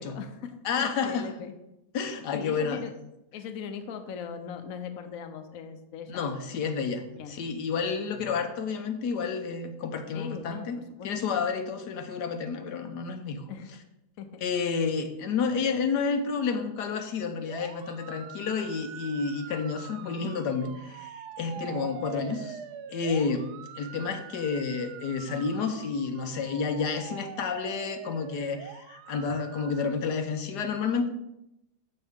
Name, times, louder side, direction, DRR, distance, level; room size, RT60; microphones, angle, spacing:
voice 1, 0.0-1.5 2.3-2.9 3.3-6.3 7.2-7.4 10.1-11.1 13.5-13.7 14.2-14.4 21.6-21.9, left 6 dB, 60° left, 7 dB, 1.2 m, -39 dB
voice 2, 0.6-1.3 1.9-2.8 6.1-7.0 7.3-10.8 11.0-13.4 14.4-22.6 22.9-23.4 23.8-31.1, left 5 dB, 80° left, 6 dB, 1.4 m, -30 dB
sound 1, 17.5-29.9, right 10 dB, 75° right, 1.1 m, -44 dB
13.5 x 5.3 x 3.6 m, 0.86 s
omnidirectional pair, 1.8 m